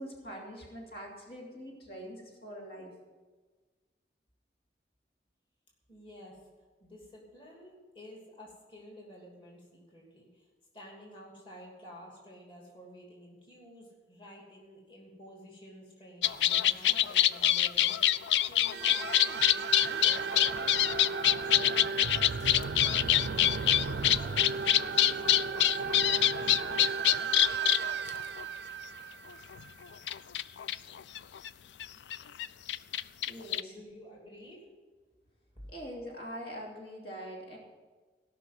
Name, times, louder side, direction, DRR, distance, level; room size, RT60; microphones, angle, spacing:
voice 1, 0.0-2.9 33.3-33.7 35.7-37.6, equal, 65° left, -2 dB, 3.0 m, -43 dB
voice 2, 5.9-6.5 6.8-10.5 10.7-25.6 33.7-34.7 35.5-35.7, equal, 30° left, -2 dB, 2.9 m, -51 dB
sound 1, 16.2-28.4 29.5-29.6 30.1-31.5 31.8-33.6, left 12 dB, 85° left, 0.4 m, -26 dB
sound 2, 18.7-29.9, right 5 dB, 75° right, 0.4 m, -35 dB
17.0 x 6.1 x 7.6 m, 1.4 s
head